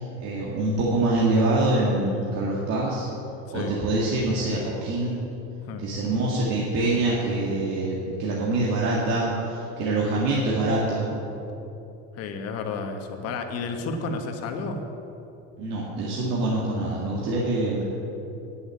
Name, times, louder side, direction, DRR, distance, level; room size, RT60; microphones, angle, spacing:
voice 1, 0.0-3.1 3.5-5.2 5.8-11.1 15.6-17.8, right 2 dB, 55° right, -5 dB, 1.9 m, -25 dB
voice 2, 12.1-14.8, left 4 dB, 50° left, 5 dB, 1.3 m, -31 dB
9.4 x 7.9 x 8.5 m, 2.9 s
cardioid pair, 140°, 33 cm